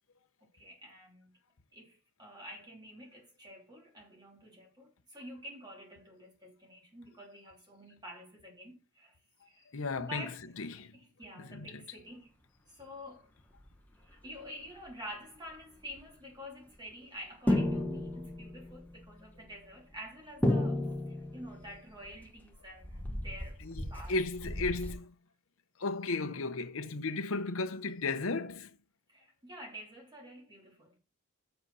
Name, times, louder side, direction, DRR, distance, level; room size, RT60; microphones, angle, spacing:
voice 1, 0.5-1.4 1.7-9.2 9.4-9.7 10.0-10.4 10.9-12.3 12.7-13.3 14.0-23.6 23.9-24.1 29.1-31.0, equal, 20° right, 3.2 m, -48 dB
voice 2, 9.7-10.3 10.6-10.9 11.4-11.8 23.6-25.2 25.8-28.7, left 3 dB, 70° left, 0.9 m, -35 dB
sound 1, 13.6-13.8 14.1-14.4 14.7-14.9 15.5-15.6 15.8-16.0 16.8-16.9 17.5-24.9, left 1 dB, 10° left, 1.1 m, -34 dB
7.9 x 6.9 x 4.1 m
head